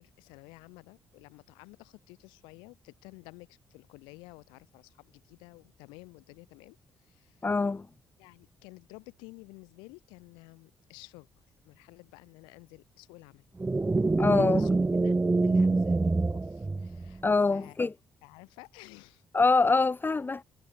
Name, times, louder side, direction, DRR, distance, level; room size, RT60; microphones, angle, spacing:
voice 1, 0.0-7.5 8.2-13.5 14.1-17.2 17.5-17.8 18.2-19.2, left 27 dB, 85° left, 4.4 m, -52 dB
voice 2, 7.4-7.9 14.2-14.7 17.2-17.9 19.3-20.4, left 3 dB, 25° left, 0.8 m, -24 dB
sound 1, 13.6-17.3, right 3 dB, 25° right, 1.3 m, -26 dB
hypercardioid pair, 50°, 8 cm